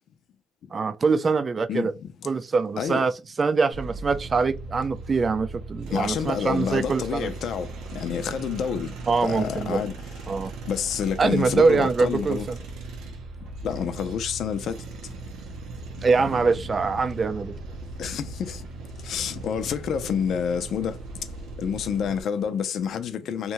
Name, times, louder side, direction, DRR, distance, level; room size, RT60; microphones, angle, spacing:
voice 1, 0.7-1.9 2.3-3.1 3.4-7.3 9.1-9.8 10.3-10.5 11.2-12.4 16.0-17.5, right 4 dB, 35° right, 0.4 m, -23 dB
voice 2, 1.7-2.1 2.8-3.0 5.9-7.7 7.9-8.9 9.2-9.9 10.7-12.5 13.6-14.8 16.3-16.4 18.0-18.6 19.0-21.0 21.6-23.5, left 7 dB, 70° left, 0.4 m, -28 dB
sound 1, 3.7-22.2, right 3 dB, 90° right, 0.6 m, -38 dB
2.7 x 2.2 x 2.9 m
cardioid pair, 90°, 0 cm